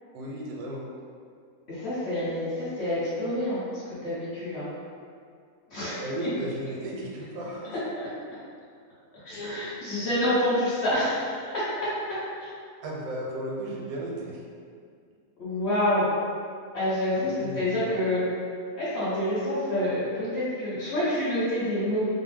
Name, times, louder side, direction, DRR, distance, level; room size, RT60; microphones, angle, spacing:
voice 1, 0.1-0.8 6.0-7.8 12.8-14.4 17.4-17.9, right 1 dB, 80° right, -3 dB, 1.1 m, -34 dB
voice 2, 1.7-3.6 4.0-4.7 5.7-6.1 8.0-8.1 9.2-12.2 15.4-16.1 16.7-18.2 18.8-22.1, left 1 dB, 50° left, -11 dB, 1.0 m, -27 dB
2.7 x 2.0 x 3.3 m, 2.2 s
omnidirectional pair, 1.7 m